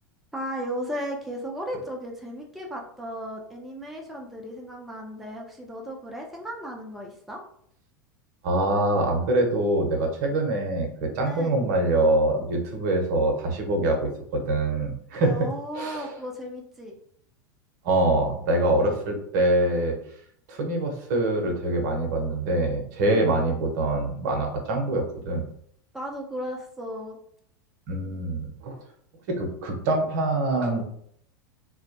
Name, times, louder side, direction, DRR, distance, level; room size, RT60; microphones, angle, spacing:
voice 1, 0.3-7.4 11.2-11.5 15.2-16.9 23.1-23.4 25.9-27.2, equal, ahead, -1 dB, 0.4 m, -35 dB
voice 2, 8.4-15.4 15.8-16.1 17.8-19.9 20.5-25.5 27.9-28.8 29.3-30.8, right 2 dB, 60° right, 3 dB, 0.7 m, -24 dB
2.1 x 2.1 x 2.7 m, 0.67 s
figure-of-eight pair, 90°, 11 cm